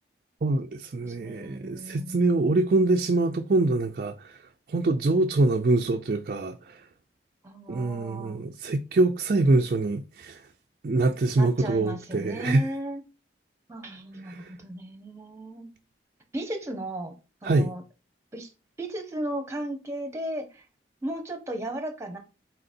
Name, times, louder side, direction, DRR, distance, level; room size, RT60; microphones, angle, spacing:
voice 1, 0.4-4.3 4.7-6.6 7.7-10.4 10.8-12.6 14.3-14.5 17.4-17.7, right 2 dB, 50° right, 0.4 m, -24 dB
voice 2, 1.0-2.3 7.4-8.4 11.4-13.0 13.7-15.7 16.3-17.2 17.4-17.8 18.3-18.5 18.8-20.6 21.0-22.2, right 1 dB, 15° right, 1.0 m, -35 dB
4.2 x 4.0 x 2.6 m
head